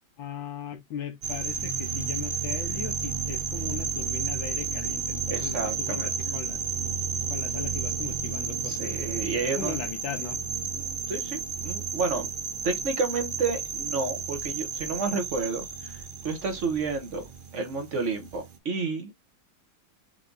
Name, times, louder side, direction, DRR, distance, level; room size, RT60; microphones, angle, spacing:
voice 1, 0.2-6.6 7.3-8.9 9.4-10.4, left 7 dB, 85° left, 1.7 m, -38 dB
sound 1, 1.2-18.6, right 6 dB, 85° right, 0.4 m, -32 dB
voice 2, 5.3-6.1 8.6-9.7 10.7-12.3 12.6-17.2 17.5-19.2, right 4 dB, 50° right, 1.1 m, -31 dB
4.7 x 2.9 x 3.8 m
omnidirectional pair, 2.1 m